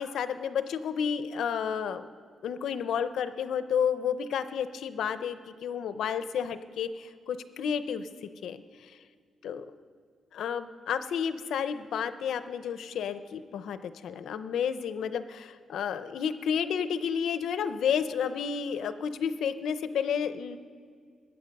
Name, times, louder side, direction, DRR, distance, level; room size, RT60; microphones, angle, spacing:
voice 1, 0.0-2.1 2.4-8.9 9.4-9.6 10.3-20.6, left 7 dB, 80° left, 12 dB, 0.6 m, -31 dB
20.5 x 8.7 x 5.3 m, 2.1 s
wide cardioid pair, 165°, 0 cm